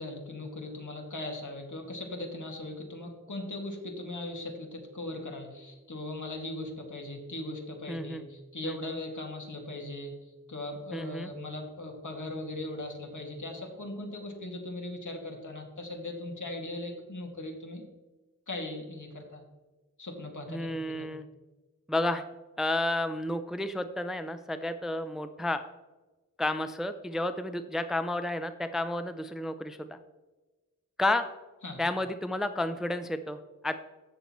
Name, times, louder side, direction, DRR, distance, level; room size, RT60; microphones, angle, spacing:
voice 1, 0.0-17.8 18.5-19.4 20.0-20.7 21.0-21.1 31.6-31.8, left 2 dB, 65° left, 1 dB, 2.4 m, -39 dB
voice 2, 7.9-8.2 8.6-8.9 10.9-11.3 20.5-21.3 21.9-22.2 22.6-25.6 26.4-30.0 31.0-31.3 31.8-33.8, left 1 dB, ahead, 9 dB, 0.5 m, -31 dB
16.0 x 6.8 x 3.1 m, 1.2 s
wide cardioid pair, 80°, 33 cm